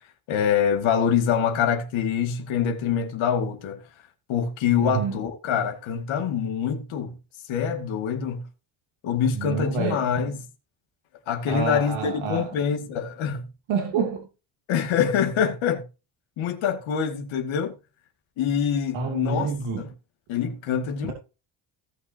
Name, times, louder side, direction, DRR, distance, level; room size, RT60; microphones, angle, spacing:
voice 1, 0.3-3.8 4.3-7.1 7.5-8.4 9.0-10.4 11.3-13.4 14.7-15.9 16.4-17.7 18.4-19.9 20.3-21.1, left 7 dB, 80° left, 2.2 m, -25 dB
voice 2, 4.8-5.2 9.3-10.0 11.5-12.5 13.7-14.2 18.9-19.9, right 5 dB, 75° right, 2.9 m, -28 dB
17.5 x 6.0 x 2.8 m
cardioid pair, 90°, 47 cm